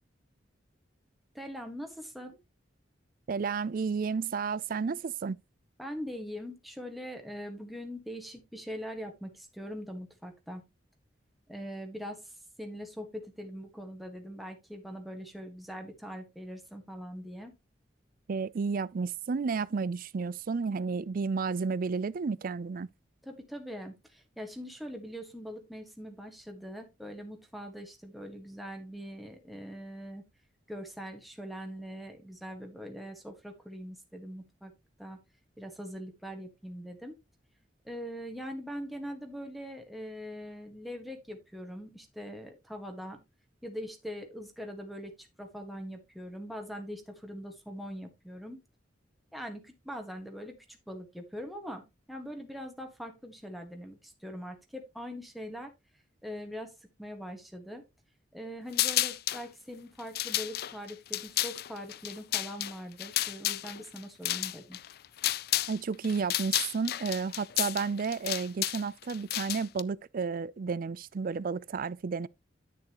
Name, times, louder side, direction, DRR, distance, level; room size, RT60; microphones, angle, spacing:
voice 1, 1.3-2.4 5.8-10.6 11.5-12.3 12.6-17.5 23.2-30.2 30.7-34.7 35.0-35.2 35.6-37.2 37.8-43.2 43.6-48.6 49.3-51.8 52.1-55.7 56.2-57.8 58.3-64.8, equal, ahead, 1.6 m, -42 dB
voice 2, 3.3-5.4 18.3-22.9 65.7-72.3, right 5 dB, 50° right, 0.4 m, -32 dB
sound 1, 58.7-59.4 60.0-65.8 66.0-69.8, left 14 dB, 55° left, 0.4 m, -31 dB
10.5 x 6.7 x 3.0 m
head